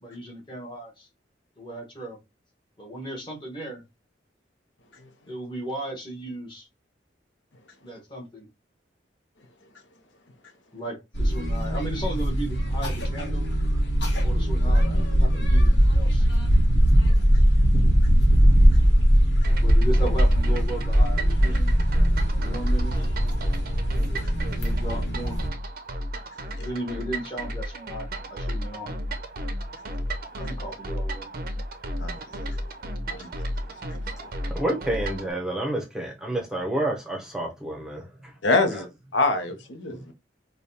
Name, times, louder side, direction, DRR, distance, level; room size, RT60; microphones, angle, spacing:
voice 1, 0.0-1.1 1.6-2.2 2.8-3.8 5.3-6.7 7.8-8.5 10.7-13.5 14.2-16.3 19.6-21.7 22.3-22.9 24.5-25.4 26.6-28.9 30.4-31.3, right 1 dB, 25° left, 1.2 m, -35 dB
sound 1, 11.1-25.5, equal, 70° left, 1.3 m, -20 dB
sound 2, 19.4-35.3, right 1 dB, 50° right, 0.5 m, -34 dB
voice 2, 32.0-32.6 33.1-33.3 33.9-34.3 38.4-38.9 39.1-40.1, left 3 dB, 85° left, 0.7 m, -26 dB
voice 3, 34.5-38.3 38.7-38.8 39.9-40.1, right 1 dB, 5° right, 0.7 m, -29 dB
5.0 x 2.3 x 2.7 m
head